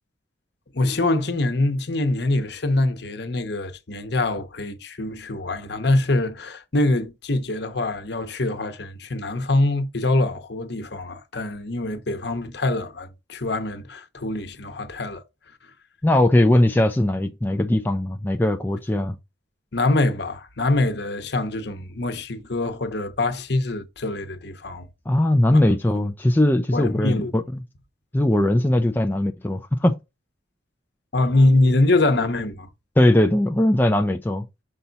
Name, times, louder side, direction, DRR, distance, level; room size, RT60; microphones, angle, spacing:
voice 1, 0.7-15.2 19.7-24.9 25.7-25.8 26.7-27.3 31.1-32.7, left 2 dB, 55° left, 1.0 m, -24 dB
voice 2, 16.0-19.2 25.1-27.4 28.1-29.9 33.0-34.5, left 1 dB, 10° left, 0.4 m, -20 dB
5.6 x 4.0 x 5.7 m
head